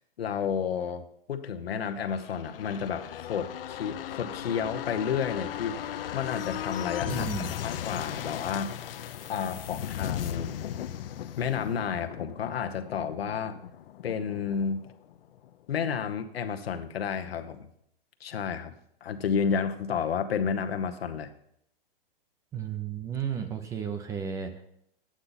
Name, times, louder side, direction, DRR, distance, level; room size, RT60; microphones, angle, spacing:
voice 1, 0.2-7.3 7.6-9.0 9.3-10.6 11.4-13.6 14.0-14.8 15.7-17.7 18.2-18.7 19.0-21.3, left 7 dB, 90° left, 7 dB, 1.1 m, -31 dB
sound 1, 2.0-15.5 15.8-15.9, left 10 dB, 70° left, 0.7 m, -37 dB
voice 2, 7.1-7.6 22.5-24.6, right 7 dB, 10° right, 7 dB, 0.5 m, -33 dB
9.8 x 8.7 x 4.0 m, 0.73 s
hypercardioid pair, 150°, 29 cm